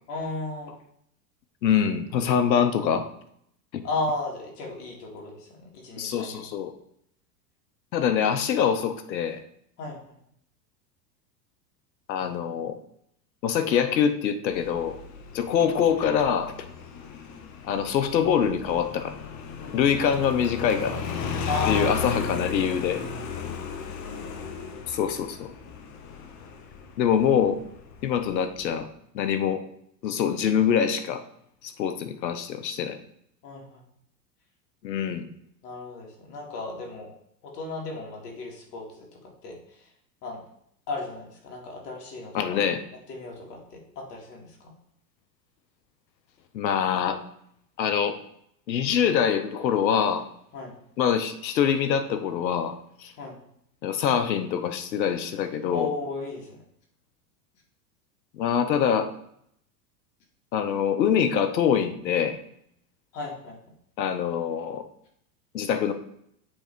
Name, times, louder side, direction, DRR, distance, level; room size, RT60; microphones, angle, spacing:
voice 1, 0.1-0.7 3.8-6.4 9.8-10.2 21.5-22.2 33.4-33.8 35.6-37.1 37.4-39.9 40.2-40.4 40.9-42.6 43.1-44.7 50.5-50.7 53.2-53.4 55.7-56.6 63.1-63.6, left 3 dB, 65° left, 0 dB, 2.4 m, -34 dB
voice 2, 1.6-3.1 3.7-3.8 6.0-6.7 7.9-9.4 12.1-12.8 13.4-15.0 15.3-16.5 17.7-19.2 19.7-21.0 21.7-23.0 24.9-25.5 27.0-27.6 28.0-28.9 29.1-29.6 30.0-31.2 31.6-33.0 34.8-35.3 42.3-42.8 46.5-47.2 47.8-48.2 48.7-50.3 51.0-52.7 53.0-53.1 53.8-55.9 58.3-59.1 60.5-62.4 64.0-64.8 65.5-65.9, left 8 dB, 90° left, 10 dB, 0.9 m, -24 dB
Motorcycle, 14.5-28.8, left 6 dB, 35° left, 0.8 m, -36 dB
7.7 x 3.4 x 4.5 m, 0.71 s
hypercardioid pair, 110°, 50 cm